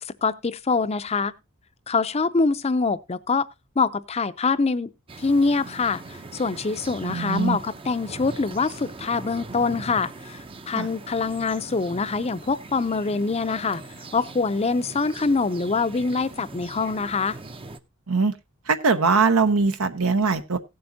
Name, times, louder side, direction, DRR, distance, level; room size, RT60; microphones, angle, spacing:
voice 1, 0.0-1.3 1.9-3.5 3.8-4.9 5.2-13.8 14.1-17.4, left 4 dB, 30° left, 0.5 m, -24 dB
sound 1, 5.1-17.8, right 3 dB, 25° right, 0.6 m, -41 dB
voice 2, 7.0-7.6 10.7-10.9 18.1-18.4 18.7-20.6, right 4 dB, 75° right, 0.9 m, -21 dB
17.0 x 7.8 x 2.7 m
head